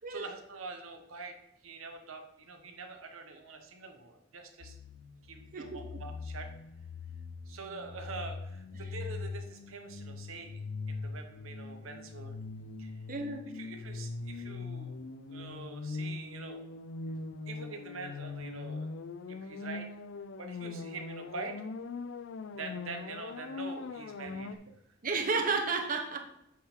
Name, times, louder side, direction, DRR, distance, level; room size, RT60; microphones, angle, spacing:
voice 1, 0.0-1.4 1.6-4.8 5.2-6.5 7.5-12.4 12.8-13.0 13.5-15.0 15.3-16.6 17.5-18.9 19.3-19.9 20.4-21.6 22.5-24.7, right 3 dB, 85° right, 6 dB, 1.0 m, -45 dB
sound 1, 4.6-24.6, left 3 dB, 65° left, 0.4 m, -41 dB
voice 2, 5.5-6.0 13.1-13.5 25.0-26.2, right 4 dB, 45° right, 4 dB, 0.9 m, -32 dB
8.3 x 3.8 x 4.4 m, 0.80 s
head